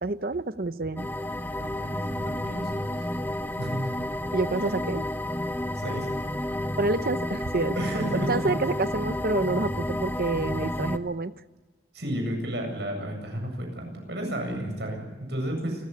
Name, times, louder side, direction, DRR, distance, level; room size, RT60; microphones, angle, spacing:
voice 1, 0.0-1.1 4.3-5.1 6.8-7.7 8.3-11.3, right 2 dB, 55° right, 13 dB, 0.8 m, -28 dB
sound 1, 1.0-11.0, left 1 dB, 10° left, 0.8 m, -31 dB
voice 2, 1.6-3.0 3.6-3.9 5.7-6.1 7.7-8.3 11.9-15.9, right 1 dB, 70° right, 3 dB, 8.0 m, -32 dB
29.5 x 15.0 x 8.3 m, 1.2 s
head